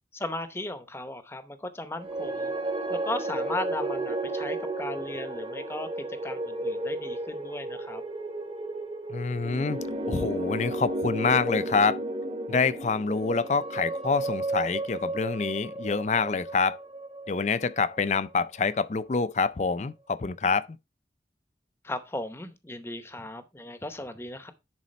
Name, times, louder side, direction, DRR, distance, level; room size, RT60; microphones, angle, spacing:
voice 1, 0.1-2.5 2.9-8.0 21.8-24.5, left 1 dB, 15° left, 0.8 m, -36 dB
sound 1, 2.0-18.3, right 2 dB, 30° right, 1.2 m, -33 dB
voice 2, 9.1-9.8 10.1-12.0 12.5-16.8 17.3-20.8, left 4 dB, 40° left, 0.4 m, -26 dB
10.5 x 4.1 x 4.2 m
head